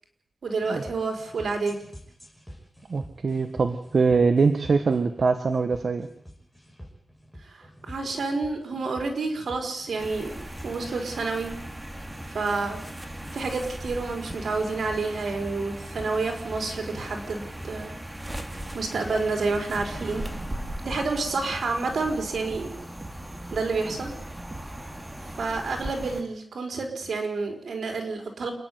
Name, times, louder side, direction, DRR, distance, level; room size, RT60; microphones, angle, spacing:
voice 1, 0.4-1.8 7.4-10.3 10.6-11.5 12.3-12.8 13.3-17.9 18.7-20.3 20.8-22.7 23.5-24.1 25.4-28.5, right 3 dB, 85° right, 4 dB, 4.9 m, -29 dB
sound 1, 0.6-17.8, equal, 5° left, 6.4 m, -47 dB
voice 2, 2.9-6.1, right 4 dB, 65° right, 7 dB, 1.5 m, -23 dB
sound 2, 10.0-26.2, right 1 dB, 15° right, 2.7 m, -38 dB
sound 3, 18.6-24.7, right 2 dB, 30° right, 4.2 m, -45 dB
28.0 x 10.5 x 9.6 m, 0.70 s
wide cardioid pair, 80°, 0 cm